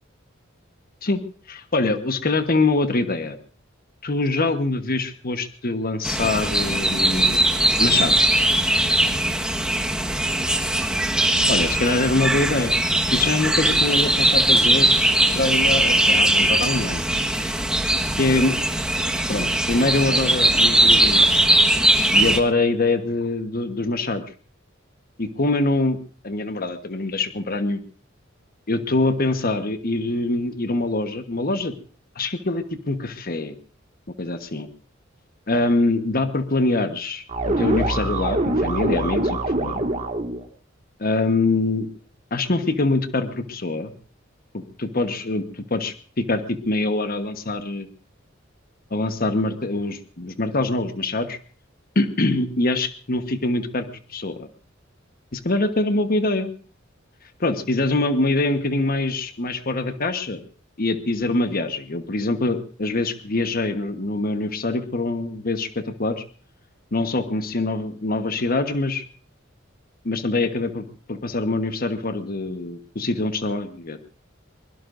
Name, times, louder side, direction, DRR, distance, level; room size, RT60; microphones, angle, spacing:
voice 1, 1.5-3.4 4.0-7.5 7.8-8.3 11.5-12.7 13.1-15.0 15.3-17.0 18.2-18.6 19.3-21.3 22.1-24.2 25.2-26.0 26.2-27.8 28.7-31.7 32.1-33.5 34.2-34.7 35.5-39.9 41.0-41.9 42.3-43.9 44.5-47.9 48.9-51.4 51.9-54.5 55.3-56.5 57.4-60.4 60.8-66.2 66.9-69.0 70.0-74.0, left 2 dB, 45° left, 8 dB, 1.2 m, -24 dB
sound 1, 6.0-22.4, right 1 dB, 5° right, 1.4 m, -20 dB
sound 2, 37.3-40.4, right 2 dB, 40° right, 2.0 m, -24 dB
23.5 x 22.0 x 2.6 m, 0.42 s
head